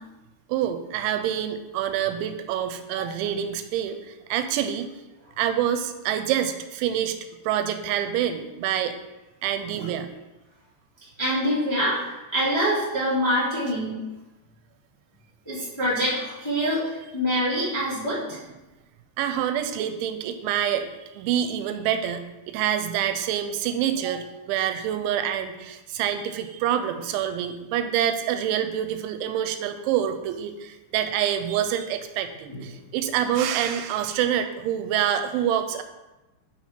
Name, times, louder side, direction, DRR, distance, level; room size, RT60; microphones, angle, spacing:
voice 1, 0.5-4.9 5.4-7.2 7.5-8.9 9.4-10.1 18.3-18.4 19.2-35.8, right 10 dB, 85° right, 9 dB, 2.9 m, -26 dB
voice 2, 11.2-14.0 15.4-18.4 32.5-32.6, equal, 40° left, -10 dB, 0.3 m, -25 dB
6.3 x 5.8 x 4.4 m, 1.1 s
omnidirectional pair, 5.4 m